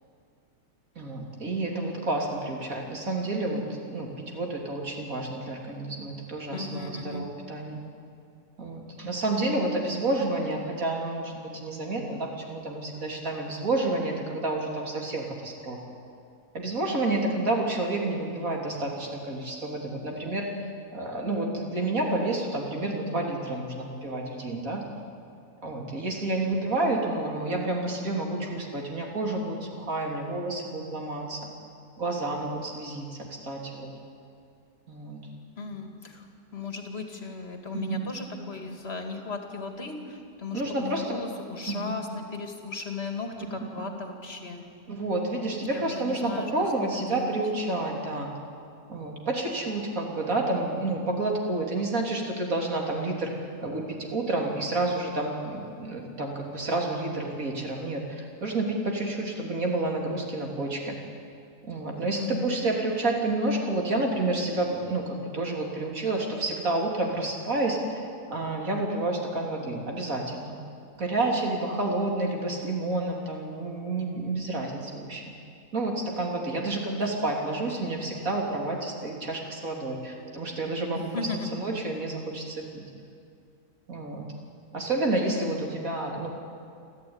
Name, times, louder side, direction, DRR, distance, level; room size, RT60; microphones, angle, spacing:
voice 1, 1.0-7.8 8.6-15.8 16.5-20.5 20.9-24.8 25.6-31.4 32.0-33.9 34.9-35.3 37.7-38.0 40.5-41.2 41.7-41.9 43.6-43.7 44.9-48.3 48.9-53.3 53.6-60.9 61.6-68.0 68.3-70.5 71.0-75.2 75.7-81.1 81.5-82.8 83.9-84.3 84.7-86.3, right 2 dB, 55° right, 0 dB, 3.6 m, -29 dB
voice 2, 6.5-7.2 35.6-36.2 36.5-40.0 40.4-44.6 45.7-46.5 46.8-47.4 62.1-62.6 80.9-81.6, left 4 dB, 40° left, 3 dB, 2.6 m, -36 dB
28.0 x 13.5 x 9.7 m, 2.4 s
omnidirectional pair, 1.7 m